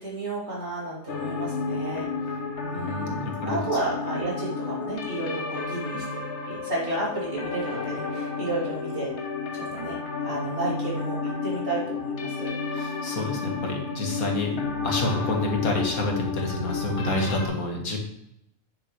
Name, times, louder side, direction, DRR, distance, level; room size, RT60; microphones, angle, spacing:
voice 1, 0.0-2.3 2.6-9.1 9.5-10.0 10.2-12.5 12.8-12.9, right 2 dB, 50° right, -6 dB, 3.4 m, -32 dB
sound 1, 1.1-17.5, left 4 dB, 55° left, 1.3 m, -31 dB
voice 2, 2.7-3.6 12.7-18.0, left 2 dB, 85° left, 1 dB, 2.1 m, -28 dB
8.9 x 7.2 x 3.2 m, 0.80 s
omnidirectional pair, 1.5 m